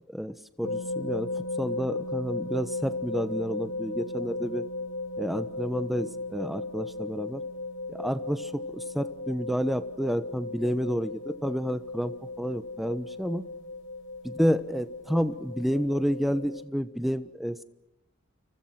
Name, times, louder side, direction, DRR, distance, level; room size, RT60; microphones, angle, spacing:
voice 1, 0.1-4.7 5.2-7.4 7.9-13.4 14.2-17.6, equal, ahead, 12 dB, 1.1 m, -30 dB
sound 1, 0.6-16.6, left 2 dB, 55° left, 4.5 m, -36 dB
29.5 x 26.5 x 5.9 m, 0.92 s
head